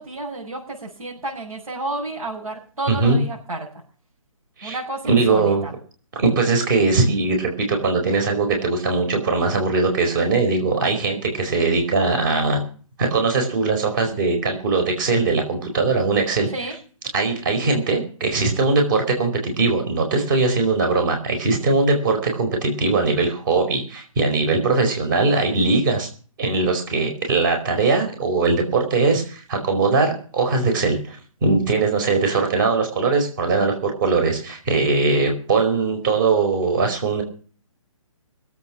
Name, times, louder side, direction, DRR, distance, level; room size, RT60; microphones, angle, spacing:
voice 1, 0.0-3.7 4.6-5.7 16.5-16.7, right 2 dB, 75° right, -4 dB, 7.3 m, -31 dB
voice 2, 2.9-3.2 4.6-4.8 5.0-5.6 6.1-12.6 13.0-16.5 17.1-26.1 26.4-37.2, right 3 dB, 35° right, 4 dB, 4.8 m, -20 dB
23.0 x 8.3 x 6.0 m, 0.41 s
hypercardioid pair, 160°, 17 cm